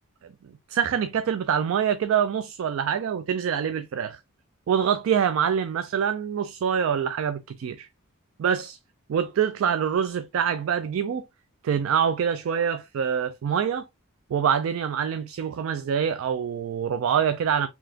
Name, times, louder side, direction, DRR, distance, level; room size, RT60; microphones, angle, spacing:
voice 1, 0.7-4.2 4.7-7.9 8.4-8.8 9.1-11.2 11.6-13.9 14.3-17.7, right 8 dB, 70° right, 0.3 m, -25 dB
4.0 x 2.9 x 2.7 m
head